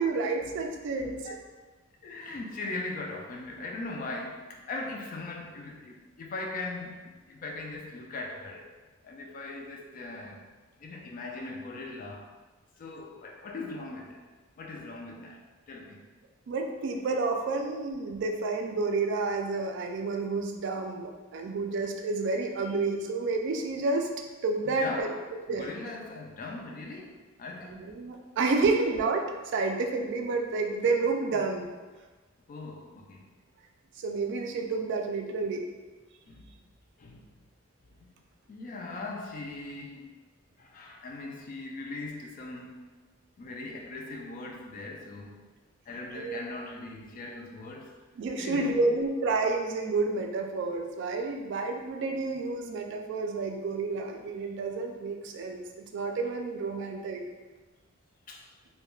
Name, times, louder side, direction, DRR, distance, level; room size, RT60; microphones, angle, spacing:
voice 1, 0.0-1.2 16.5-24.1 24.4-25.1 25.5-25.7 27.6-31.7 34.0-35.7 46.1-46.4 48.2-57.2, right 3 dB, 60° right, 3 dB, 0.3 m, -30 dB
voice 2, 0.9-1.4 2.0-8.7 9.0-10.4 10.8-12.3 12.8-14.3 14.6-15.4 15.7-16.0 24.6-27.8 32.5-33.3 36.3-36.5 37.0-37.3 38.0-38.2 38.5-40.1 40.6-42.7 43.4-45.4 45.9-47.9 48.4-48.8 58.3-58.5, left 2 dB, 40° left, 1 dB, 0.3 m, -40 dB
2.3 x 2.1 x 3.0 m, 1.3 s
head